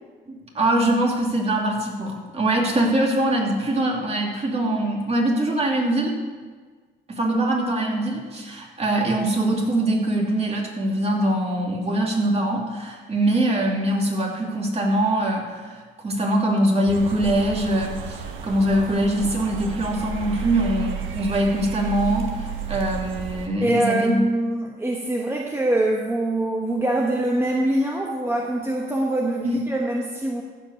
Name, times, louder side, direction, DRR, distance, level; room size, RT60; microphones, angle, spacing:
voice 1, 0.3-6.2 7.1-24.2 29.4-29.6, right 1 dB, 30° right, -2 dB, 2.8 m, -23 dB
sound 1, 16.9-23.5, right 7 dB, 80° right, 1.2 m, -32 dB
voice 2, 23.6-30.4, right 1 dB, 10° right, 0 dB, 1.1 m, -23 dB
15.0 x 5.2 x 6.7 m, 1.5 s
cardioid pair, 90°, 20 cm